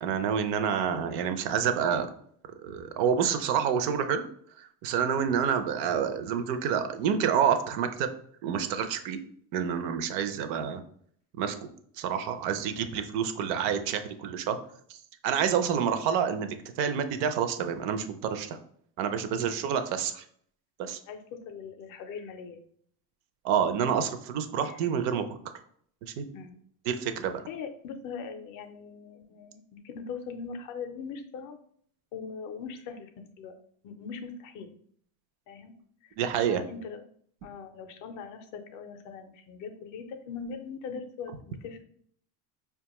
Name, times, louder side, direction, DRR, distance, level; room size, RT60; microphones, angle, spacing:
voice 1, 0.0-2.1 2.6-4.2 4.6-8.1 8.4-9.2 9.5-10.8 11.4-11.6 12.0-14.6 14.9-15.0 15.2-18.6 19.0-20.2 20.8-21.0 23.4-25.2 26.2-26.3 26.9-27.3 36.2-36.6, right 7 dB, 55° right, 9 dB, 0.5 m, -28 dB
voice 2, 21.1-22.6 24.6-24.8 26.3-26.6 27.5-31.6 32.1-33.5 33.8-34.7 35.5-35.8 36.0-36.1 36.5-37.0 37.4-41.8, left 5 dB, 45° left, 7 dB, 0.5 m, -41 dB
4.9 x 2.3 x 2.9 m, 0.63 s
cardioid pair, 155°, 47 cm